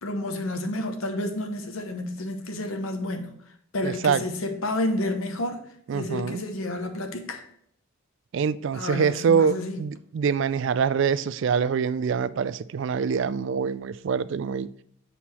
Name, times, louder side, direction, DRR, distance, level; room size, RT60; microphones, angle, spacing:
voice 1, 0.0-3.3 3.7-5.6 5.9-7.4 8.7-9.8, left 1 dB, 75° left, 1.0 m, -30 dB
voice 2, 3.8-4.2 5.9-6.4 8.3-14.7, right 6 dB, 60° right, 0.3 m, -25 dB
7.4 x 4.2 x 4.3 m
head